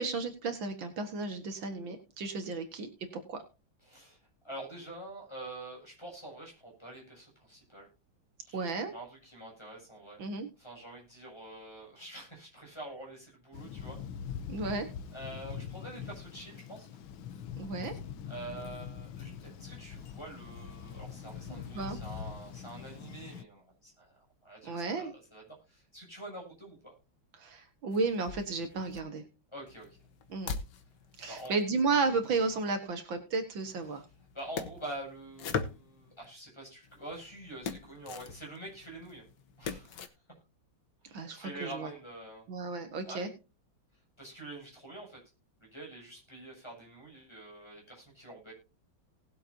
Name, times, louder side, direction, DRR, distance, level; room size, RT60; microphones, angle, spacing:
voice 1, 0.0-3.4 8.5-8.9 10.2-10.5 14.5-14.9 17.6-18.0 21.5-22.0 24.6-25.1 27.3-29.2 30.3-30.6 31.2-34.0 41.1-41.9 42.5-43.3, right 4 dB, 75° right, 7 dB, 2.3 m, -33 dB
voice 2, 3.8-4.2 4.4-7.9 8.5-10.2 10.6-14.0 15.1-16.9 18.3-24.1 24.4-26.9 29.5-30.0 31.3-31.6 34.3-39.2 39.6-40.1 41.0-42.4 43.1-43.3 44.2-45.2 45.6-48.5, right 1 dB, 15° left, -1 dB, 6.8 m, -46 dB
Thunder, 13.5-23.4, left 7 dB, 85° left, 1.6 m, -43 dB
sound 1, 27.9-29.0 29.7-32.7 33.6-36.3 36.8-40.1, left 6 dB, 65° left, 1.7 m, -42 dB
19.0 x 7.8 x 2.7 m, 0.30 s
omnidirectional pair, 2.1 m